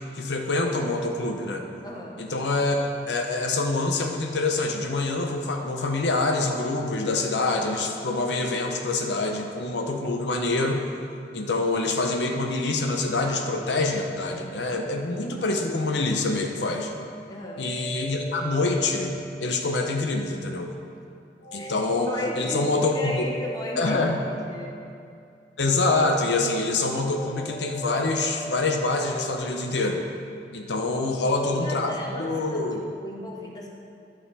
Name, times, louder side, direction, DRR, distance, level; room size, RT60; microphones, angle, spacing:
voice 1, 0.1-1.6 2.2-2.8 3.1-10.8 11.3-16.9 17.6-19.1 19.4-20.7 21.5-23.2 23.8-24.2 25.6-30.0 30.5-32.8, left 2 dB, 80° left, 3 dB, 0.8 m, -26 dB
voice 2, 1.8-2.2 17.3-17.6 21.6-21.7 22.1-24.8 31.5-32.7 32.9-33.7, left 1 dB, 20° left, -2 dB, 1.1 m, -35 dB
sound 1, 17.4-20.0 21.4-25.3 26.7-29.8, equal, 60° left, 1.7 m, -39 dB
11.0 x 5.9 x 4.1 m, 2.4 s
head